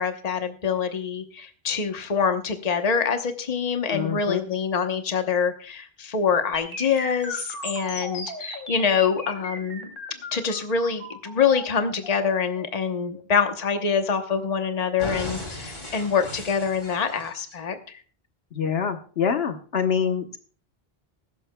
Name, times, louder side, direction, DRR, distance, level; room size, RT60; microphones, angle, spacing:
voice 1, 0.0-9.9 10.3-18.0, left 6 dB, 40° left, 7 dB, 1.1 m, -25 dB
voice 2, 3.9-4.4 18.5-20.4, left 7 dB, 75° left, 7 dB, 1.3 m, -26 dB
sound 1, 6.5-14.5 15.0-17.5, left 2 dB, 55° left, 3.0 m, -37 dB
21.0 x 11.5 x 2.3 m, 0.42 s
omnidirectional pair, 1.1 m